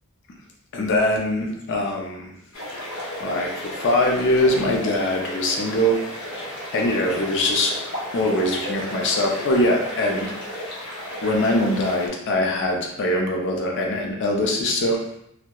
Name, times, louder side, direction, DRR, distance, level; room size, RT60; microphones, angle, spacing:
voice 1, 0.7-2.3 3.2-7.8 8.1-10.7 11.2-15.0, left 1 dB, 55° left, 0 dB, 0.4 m, -23 dB
sound 1, 2.5-12.1, left 1 dB, 80° left, 0.8 m, -33 dB
2.7 x 2.0 x 2.2 m, 0.76 s
head